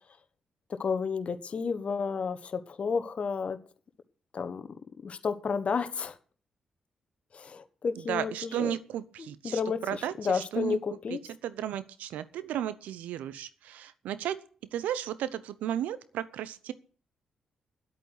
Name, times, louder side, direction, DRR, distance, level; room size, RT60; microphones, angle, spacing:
voice 1, 0.8-3.6 4.3-4.7 5.0-6.2 7.3-8.8 9.2-11.2, left 5 dB, 55° left, 10 dB, 1.3 m, -31 dB
voice 2, 8.1-9.5 9.9-10.1 10.5-10.8 11.4-13.5 13.7-14.4 14.7-16.7, right 11 dB, 80° right, 15 dB, 0.8 m, -33 dB
9.7 x 8.4 x 8.1 m, 0.43 s
hypercardioid pair, 45°, 3 cm